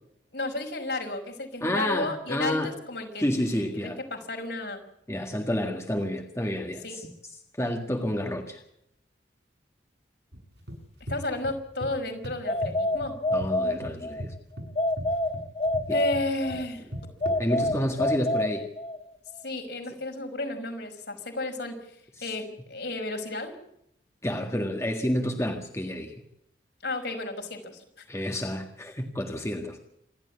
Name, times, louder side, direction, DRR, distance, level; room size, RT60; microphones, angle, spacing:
voice 1, 0.3-3.2 3.8-4.8 6.8-7.0 11.1-13.1 15.9-16.9 19.4-21.8 22.2-23.5 26.8-28.0, left 2 dB, 70° left, 3 dB, 5.5 m, -32 dB
voice 2, 1.6-2.7 3.2-4.0 5.1-7.1 7.6-8.6 13.3-14.3 15.9-16.0 17.4-18.7 22.2-22.3 24.2-26.1 28.1-29.8, left 1 dB, 15° left, 3 dB, 1.8 m, -29 dB
sound 1, 10.3-11.9 12.2-13.5 13.8-18.1, equal, 75° right, 7.5 m, -38 dB
sound 2, 12.5-14.2 14.8-16.7 17.2-19.1, left 1 dB, 35° left, 1.7 m, -28 dB
27.5 x 12.0 x 8.5 m, 0.78 s
head